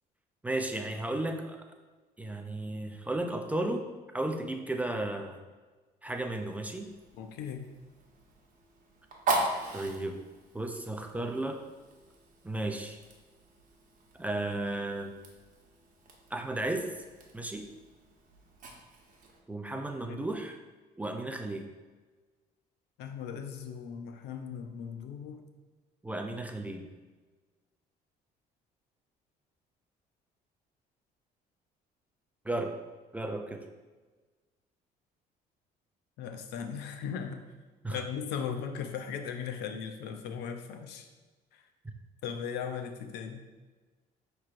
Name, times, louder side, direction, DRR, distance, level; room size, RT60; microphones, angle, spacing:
voice 1, 0.4-1.6 2.2-3.9 4.1-5.4 6.0-6.9 9.7-10.2 10.5-11.6 12.4-13.0 14.2-15.1 16.3-16.9 17.3-17.7 19.5-20.6 21.0-21.7 26.0-26.9 32.5-32.8 33.1-33.6 37.8-38.1, right 2 dB, 10° right, 4 dB, 0.3 m, -34 dB
Fire, 6.1-19.4, right 2 dB, 50° right, 0.9 m, -40 dB
voice 2, 7.2-7.7 20.0-20.3 23.0-25.4 36.2-37.5 37.9-41.1 42.2-43.4, left 7 dB, 80° left, 6 dB, 0.5 m, -38 dB
5.6 x 3.2 x 2.4 m, 1.3 s
cardioid pair, 110°, 17 cm